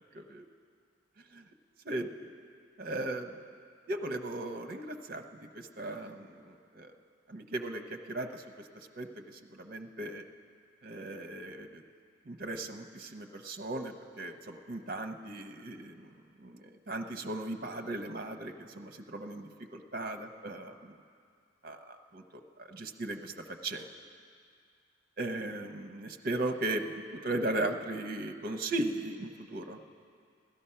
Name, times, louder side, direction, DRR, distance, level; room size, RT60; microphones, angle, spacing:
voice 1, 1.9-2.3 2.8-3.4 3.9-6.9 7.3-8.4 9.0-9.1 9.5-10.2 10.8-11.8 12.3-16.1 16.4-20.9 21.6-22.2 22.6-23.3 23.6-23.8 25.2-29.8, right 2 dB, 50° right, 6 dB, 0.8 m, -37 dB
16.5 x 12.5 x 5.7 m, 2.3 s
head